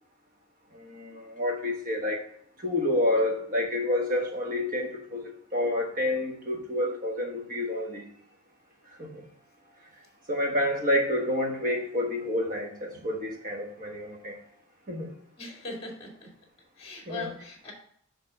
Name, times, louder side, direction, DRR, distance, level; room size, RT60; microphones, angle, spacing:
voice 1, 0.7-2.2 2.6-8.0 8.9-9.2 10.3-14.4 14.9-15.1 17.1-17.3, left 1 dB, 40° right, 2 dB, 1.3 m, -29 dB
voice 2, 15.4-16.3 16.8-17.7, left 3 dB, 30° left, 0 dB, 2.0 m, -39 dB
6.5 x 3.4 x 5.4 m, 0.65 s
head